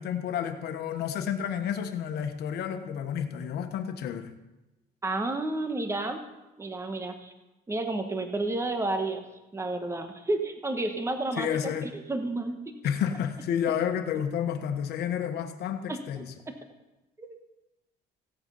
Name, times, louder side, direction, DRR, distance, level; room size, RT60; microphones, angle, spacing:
voice 1, 0.0-4.3 11.4-11.9 12.8-16.3, left 8 dB, 70° left, 7 dB, 1.3 m, -30 dB
voice 2, 5.0-6.2 6.6-7.3 7.7-9.2 9.5-12.6 15.9-16.2 17.2-17.4, right 2 dB, 15° right, 6 dB, 1.3 m, -31 dB
16.5 x 7.9 x 5.6 m, 1.0 s
cardioid pair, 110°, 17 cm